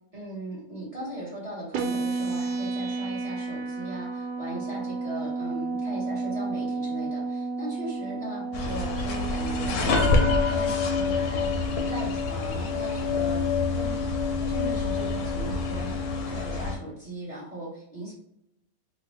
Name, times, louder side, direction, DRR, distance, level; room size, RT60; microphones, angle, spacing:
voice 1, 0.1-14.0 14.5-15.9 16.3-18.1, right 1 dB, 25° right, -6 dB, 0.9 m, -38 dB
sound 1, 1.7-9.7, right 3 dB, 85° right, 1.2 m, -31 dB
sound 2, 8.5-16.8, left 4 dB, 70° left, 1.0 m, -26 dB
3.0 x 2.3 x 3.1 m, 0.79 s
omnidirectional pair, 1.9 m